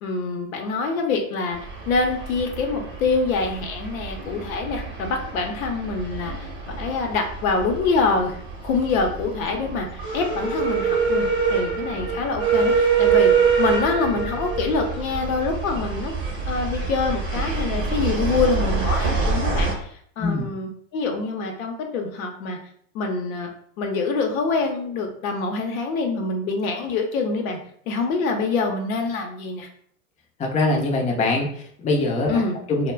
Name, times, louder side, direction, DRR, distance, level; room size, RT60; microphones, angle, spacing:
voice 1, 0.0-1.6 1.9-6.5 6.8-8.4 8.6-13.3 13.6-16.1 16.5-22.6 22.9-23.5 23.8-27.6 27.9-29.7 32.3-32.6, left 4 dB, 75° left, 3 dB, 0.7 m, -25 dB
sound 1, 1.5-19.7, right 5 dB, 30° right, 0.8 m, -25 dB
voice 2, 30.4-32.4 32.7-32.9, left 2 dB, 20° left, 0 dB, 0.5 m, -23 dB
2.2 x 2.1 x 3.2 m, 0.63 s
hypercardioid pair, 95°, 42 cm